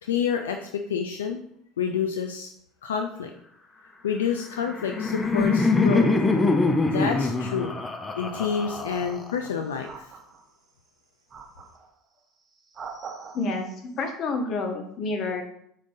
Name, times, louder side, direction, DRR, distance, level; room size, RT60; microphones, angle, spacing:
voice 1, 0.0-1.4 1.8-2.5 2.8-3.3 4.0-6.1 6.8-7.7 8.1-10.1, left 7 dB, 85° left, 4 dB, 0.3 m, -28 dB
Laughter, 4.4-9.5, left 3 dB, 20° left, 0.6 m, -24 dB
sound 1, 8.9-9.4 9.8-10.7 11.3-11.9 12.5-13.7, right 5 dB, 35° right, 0.7 m, -43 dB
voice 2, 13.3-13.7 14.0-15.4, left 3 dB, 50° left, 4 dB, 1.0 m, -28 dB
5.1 x 3.7 x 2.6 m, 0.69 s
hypercardioid pair, 75°, 0 cm